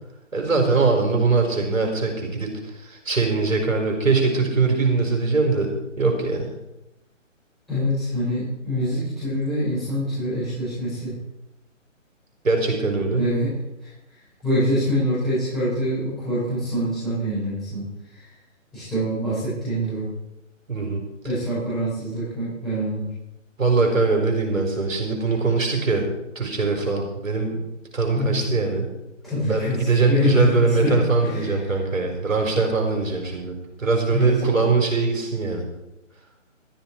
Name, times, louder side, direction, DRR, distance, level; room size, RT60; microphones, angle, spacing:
voice 1, 0.3-5.7 6.0-6.5 12.4-13.3 20.7-21.0 23.6-26.1 26.3-27.6 27.9-28.9 29.5-35.6, right 4 dB, 75° right, 3 dB, 4.7 m, -22 dB
voice 2, 7.7-11.1 13.1-13.5 14.4-17.9 18.7-20.1 21.2-23.1 28.2-28.4 29.2-30.9 31.2-31.4 34.1-34.3 34.6-34.7, equal, ahead, -14 dB, 5.4 m, -25 dB
14.0 x 11.5 x 4.5 m, 0.91 s
hypercardioid pair, 160°, 39 cm